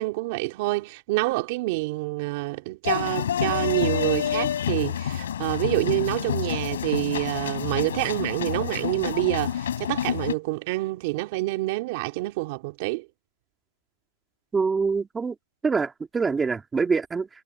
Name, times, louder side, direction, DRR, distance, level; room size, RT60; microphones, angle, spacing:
voice 1, 0.0-13.1, right 22 dB, 40° right, 2.7 m, -27 dB
sound 1, 2.8-10.3, left 9 dB, 75° left, 3.5 m, -28 dB
voice 2, 14.5-15.3 15.6-17.3, right 4 dB, 10° right, 2.7 m, -25 dB
hypercardioid pair, 160°, 0 cm